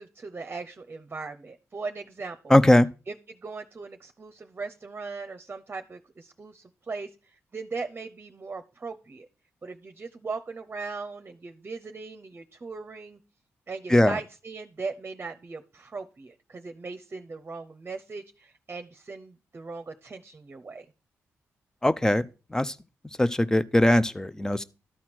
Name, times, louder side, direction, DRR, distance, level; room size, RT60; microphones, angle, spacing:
voice 1, 0.0-2.6 3.1-9.3 9.6-13.2 13.7-20.9, right 4 dB, 40° right, 0.8 m, -39 dB
voice 2, 2.5-2.9 13.9-14.2 21.8-22.2 22.5-22.7 23.2-24.6, left 1 dB, 10° left, 0.7 m, -20 dB
12.5 x 4.3 x 6.1 m
cardioid pair, 65°, 5 cm